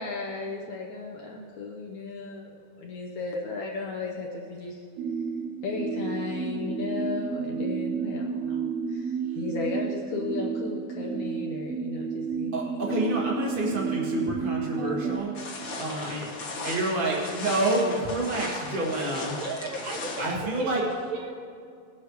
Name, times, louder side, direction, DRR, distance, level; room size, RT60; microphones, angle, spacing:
voice 1, 0.0-4.9 5.6-12.8 15.9-16.1, left 4 dB, 70° left, -1 dB, 1.8 m, -35 dB
sound 1, 5.0-15.2, right 6 dB, 85° right, 1.5 m, -31 dB
voice 2, 12.5-15.3 15.8-16.3 16.6-19.4 20.2-20.8, right 1 dB, 50° right, -4 dB, 0.6 m, -28 dB
voice 3, 14.7-15.7 19.3-21.3, right 3 dB, 70° right, -3 dB, 3.2 m, -35 dB
sound 2, 15.3-20.3, left 3 dB, 45° left, 1.5 m, -37 dB
19.0 x 8.4 x 3.2 m, 2.3 s
omnidirectional pair, 4.1 m